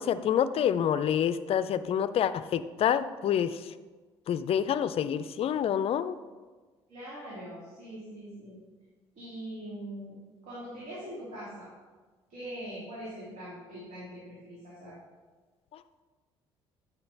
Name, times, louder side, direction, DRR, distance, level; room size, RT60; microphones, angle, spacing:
voice 1, 0.0-3.6 4.3-6.2, left 9 dB, 45° left, 14 dB, 0.4 m, -27 dB
voice 2, 6.9-8.6 9.1-10.2 10.4-11.7 12.3-15.0, right 1 dB, 60° right, -8 dB, 2.4 m, -42 dB
8.9 x 5.8 x 3.4 m, 1.4 s
hypercardioid pair, 55°, 14 cm